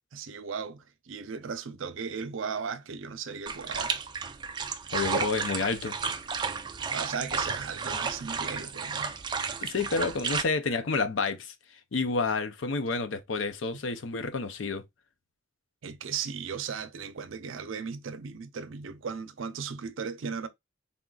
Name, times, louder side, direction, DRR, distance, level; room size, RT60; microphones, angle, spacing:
voice 1, 0.1-4.0 6.9-9.1 10.7-10.8 15.8-20.5, right 6 dB, 85° right, 0.5 m, -36 dB
sound 1, 3.5-10.4, right 5 dB, 20° right, 0.3 m, -32 dB
voice 2, 4.9-6.0 9.0-9.1 9.6-11.5 11.9-14.8, left 4 dB, 80° left, 0.6 m, -29 dB
3.5 x 2.4 x 3.7 m
head